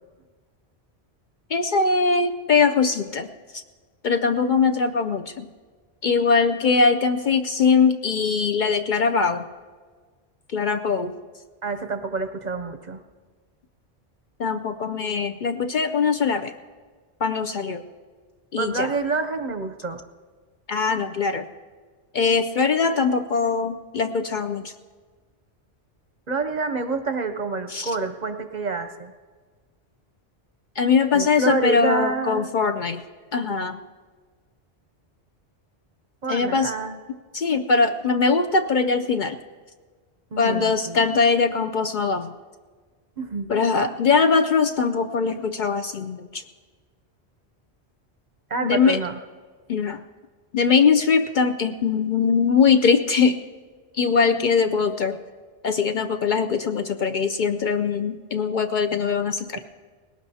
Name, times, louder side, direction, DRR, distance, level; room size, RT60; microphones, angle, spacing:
voice 1, 1.5-3.3 3.5-3.6 4.0-5.5 6.0-9.4 10.5-11.1 14.4-16.5 17.2-17.8 18.5-18.9 20.7-21.4 22.1-24.7 27.7-27.9 30.8-33.0 33.3-33.8 36.3-36.7 37.3-39.4 40.4-42.3 43.5-46.4 48.6-49.0 49.7-50.0 50.5-53.4 53.9-55.2 55.6-59.6, left 5 dB, 55° left, 7 dB, 0.6 m, -21 dB
voice 2, 11.6-13.0 18.6-20.0 26.3-29.1 31.1-32.5 36.2-37.0 40.3-41.1 43.2-43.5 48.5-49.2, right 3 dB, 50° right, 8 dB, 0.7 m, -27 dB
20.0 x 18.0 x 2.8 m, 1.5 s
omnidirectional pair, 1.1 m